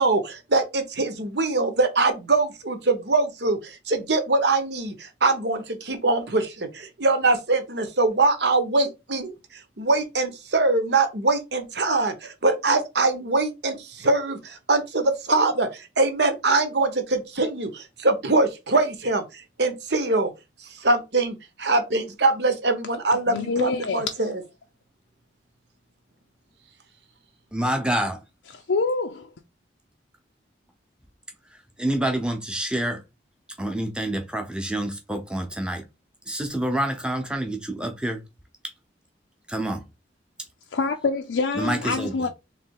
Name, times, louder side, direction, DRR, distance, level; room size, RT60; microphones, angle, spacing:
voice 1, 0.0-20.3 20.6-24.4, right 3 dB, 65° right, 1.0 m, -23 dB
voice 2, 23.3-24.0 28.5-29.3 40.7-42.3, left 4 dB, 85° left, 0.5 m, -26 dB
voice 3, 27.5-28.2 31.8-33.0 33.6-35.8 36.3-38.2 39.5-39.8 41.5-42.3, right 1 dB, 5° right, 0.8 m, -27 dB
3.3 x 3.3 x 4.7 m
head